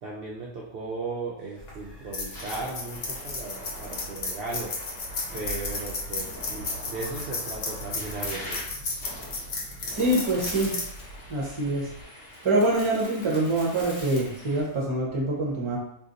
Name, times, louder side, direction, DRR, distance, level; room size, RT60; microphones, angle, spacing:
voice 1, 0.0-4.7 5.3-8.6, right 3 dB, 70° right, -4 dB, 0.5 m, -36 dB
sound 1, 1.4-1.7 2.2-14.6, equal, 15° left, 0.9 m, -44 dB
sound 2, 1.6-12.0, left 3 dB, 65° left, 1.0 m, -34 dB
sound 3, 9.0-14.9, left 1 dB, 40° left, 1.0 m, -45 dB
voice 2, 9.9-10.8 11.3-11.9 12.4-15.8, right 2 dB, 30° right, -3 dB, 0.6 m, -25 dB
2.6 x 2.5 x 3.7 m, 0.79 s
omnidirectional pair, 1.5 m